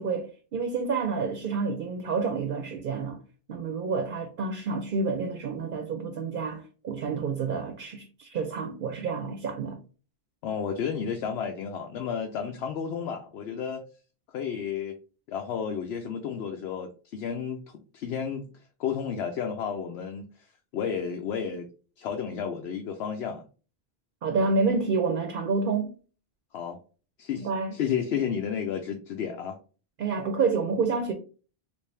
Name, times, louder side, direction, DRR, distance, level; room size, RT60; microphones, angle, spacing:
voice 1, 0.0-3.2 3.5-9.8 24.2-25.9 27.4-27.8 30.0-31.1, right 4 dB, 60° right, 0.7 m, -29 dB
voice 2, 10.4-13.8 14.3-15.0 15.3-17.6 17.9-18.5 18.8-20.3 20.7-21.7 22.0-23.4 26.5-26.8 27.2-29.6, left 7 dB, 90° left, 0.8 m, -32 dB
3.3 x 2.6 x 3.2 m
omnidirectional pair, 1.0 m